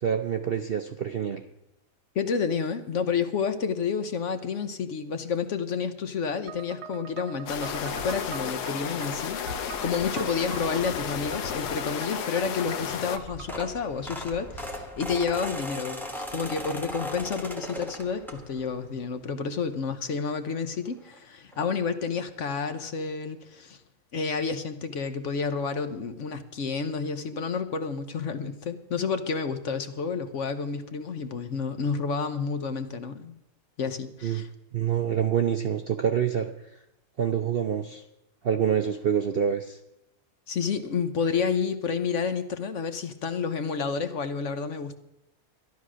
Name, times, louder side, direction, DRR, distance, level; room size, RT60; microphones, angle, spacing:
voice 1, 0.0-1.4 34.2-34.4 34.7-36.5 37.2-38.0 38.4-39.8, right 8 dB, 60° right, 7 dB, 0.6 m, -26 dB
voice 2, 2.1-9.4 9.8-23.8 24.1-33.3 33.8-34.5 40.5-44.9, left 5 dB, 55° left, 9 dB, 1.0 m, -30 dB
sound 1, 6.5-13.7, right 8 dB, 75° right, 1.3 m, -43 dB
sound 2, 7.5-13.2, left 8 dB, 85° left, 1.4 m, -33 dB
sound 3, 13.1-18.8 19.2-19.5 20.7-20.8 21.1-21.2 21.5-21.6, equal, ahead, 1.1 m, -37 dB
12.5 x 11.5 x 6.2 m, 0.87 s
omnidirectional pair, 1.7 m